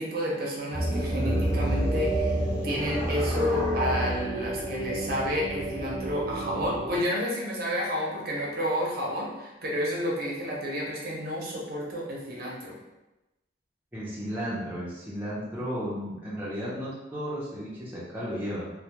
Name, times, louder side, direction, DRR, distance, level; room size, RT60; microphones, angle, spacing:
voice 1, 0.0-2.4 2.6-12.8, equal, 55° right, -4 dB, 0.6 m, -30 dB
sound 1, 0.7-7.0, right 1 dB, 10° left, 1.0 m, -29 dB
voice 2, 13.9-18.7, equal, 10° right, -8 dB, 0.5 m, -34 dB
2.1 x 2.1 x 2.8 m, 1.0 s
head